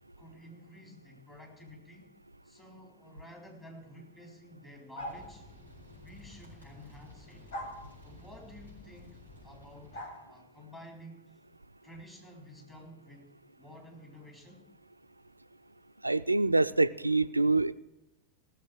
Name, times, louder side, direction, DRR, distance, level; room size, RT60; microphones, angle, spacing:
voice 1, 0.2-2.1 2.4-5.4 6.0-7.5 8.0-9.2 9.4-11.4 11.8-13.3 13.6-14.7, left 1 dB, 15° left, 0 dB, 3.9 m, -51 dB
sound 1, 4.9-5.3 7.5-7.8 9.9-10.2, equal, 55° left, 2.5 m, -39 dB
sound 2, 5.0-10.2, left 2 dB, 80° left, 5.8 m, -53 dB
voice 2, 16.0-17.7, right 2 dB, 85° right, 14 dB, 0.4 m, -25 dB
17.0 x 7.1 x 7.6 m, 0.93 s
figure-of-eight pair, 90°, 0 cm